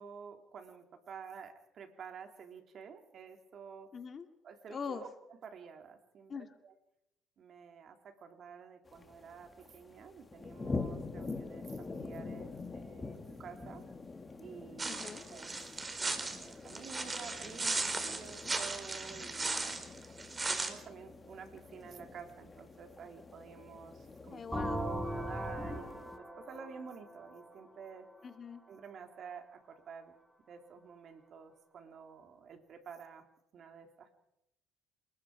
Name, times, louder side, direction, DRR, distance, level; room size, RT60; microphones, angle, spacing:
voice 1, 0.0-3.9 4.4-6.7 7.4-13.8 14.4-15.0 15.3-15.5 16.0-19.8 20.5-24.4 25.0-28.1 28.7-30.1 30.4-33.2 33.5-34.1, right 6 dB, 55° right, 5 dB, 3.6 m, -50 dB
voice 2, 3.9-4.3 4.7-5.0 6.3-6.5 14.9-15.2 24.3-24.9 28.2-28.6, left 6 dB, 40° left, 7 dB, 2.2 m, -42 dB
sound 1, 8.8-26.2, left 3 dB, 25° left, 2.4 m, -46 dB
sound 2, 14.8-20.7, right 3 dB, 25° right, 4.1 m, -37 dB
sound 3, 24.5-28.2, equal, 5° right, 7.3 m, -39 dB
28.5 x 20.5 x 5.1 m, 0.83 s
supercardioid pair, 80°, 0 cm